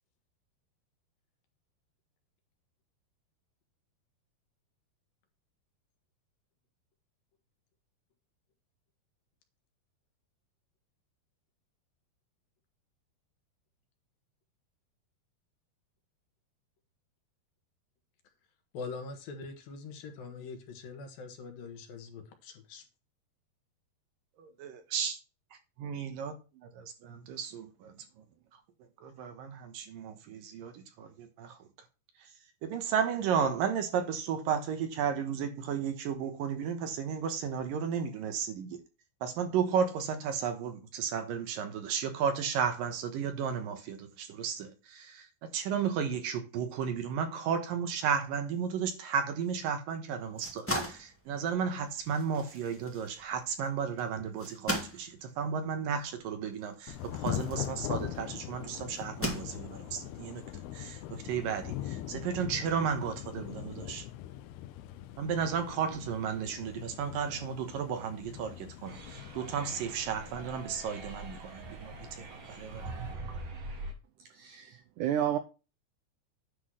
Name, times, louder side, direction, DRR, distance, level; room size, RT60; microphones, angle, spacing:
voice 1, 18.7-22.8, left 4 dB, 70° left, 3.1 m, -43 dB
voice 2, 24.4-25.2 25.8-27.9 29.0-31.6 32.2-32.3 32.6-38.8 39.2-64.1 65.2-73.0 73.3-73.4, right 7 dB, 70° right, 2.7 m, -34 dB
sound 1, 50.2-58.3 58.9-60.0, equal, 15° left, 0.4 m, -39 dB
Thunder / Rain, 56.9-73.1, left 12 dB, 85° left, 2.6 m, -42 dB
sound 2, 68.9-73.9, right 2 dB, 50° right, 1.7 m, -43 dB
voice 3, 74.3-75.4, right 10 dB, 85° right, 1.8 m, -31 dB
10.0 x 3.9 x 6.3 m
omnidirectional pair, 4.5 m